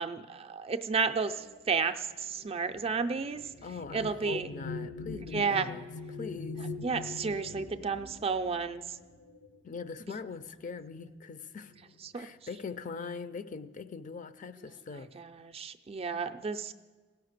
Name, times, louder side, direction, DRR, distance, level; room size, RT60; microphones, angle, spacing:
voice 1, 0.0-3.4 3.9-4.5 5.3-5.7 6.8-9.0 12.0-12.3 15.0-16.7, right 5 dB, 30° right, 8 dB, 0.4 m, -32 dB
sound 1, 1.2-10.1 11.0-11.2 11.5-12.1, left 3 dB, 70° left, 0.8 m, -43 dB
voice 2, 3.6-6.7 9.6-11.7 12.1-15.1, left 4 dB, 40° left, 12 dB, 0.4 m, -42 dB
17.5 x 5.8 x 6.5 m, 1.4 s
head